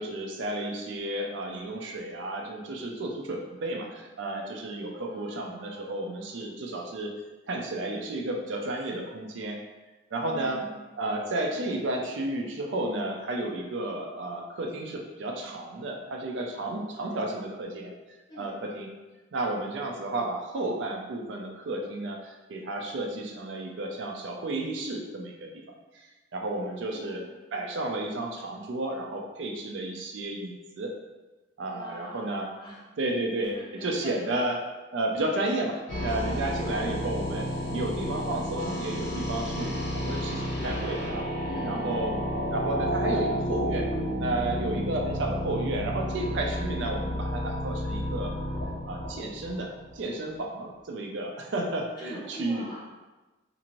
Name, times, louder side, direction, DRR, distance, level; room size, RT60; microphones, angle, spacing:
voice 1, 0.0-7.2 7.5-9.6 10.1-10.6 11.0-17.9 18.3-18.9 19.3-25.5 25.9-26.1 26.3-27.2 27.5-30.9 31.6-32.5 33.0-34.6 34.9-41.3 41.6-42.1 42.5-43.9 44.2-48.3 48.9-52.6, right 2 dB, 75° right, 1 dB, 0.4 m, -32 dB
voice 2, 4.9-6.4 10.2-10.8 18.3-18.5 26.8-27.3 31.7-32.9 33.5-34.2 41.4-42.4 52.0-53.0, right 1 dB, 25° left, -6 dB, 0.7 m, -44 dB
sound 1, 35.9-50.0, equal, 80° left, 0.8 m, -31 dB
2.6 x 2.5 x 2.9 m, 1.2 s
head